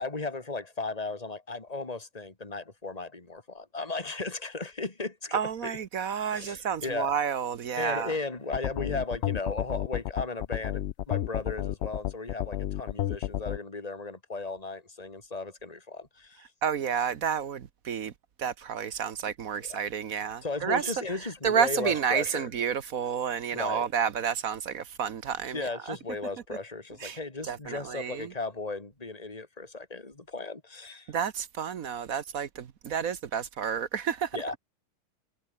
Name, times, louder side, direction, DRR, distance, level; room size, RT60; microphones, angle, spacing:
voice 1, 0.0-5.7 6.3-7.1 7.8-16.5 19.7-19.8 20.4-22.5 23.5-23.9 25.5-31.1 34.3-34.6, left 3 dB, 20° left, 3.0 m, -36 dB
voice 2, 5.3-8.2 16.6-18.1 18.4-20.9 21.4-26.0 27.0-28.3 31.1-34.4, right 7 dB, 60° right, 1.4 m, -30 dB
sound 1, 8.5-13.6, left 12 dB, 80° left, 0.6 m, -31 dB
omnidirectional pair, 1.8 m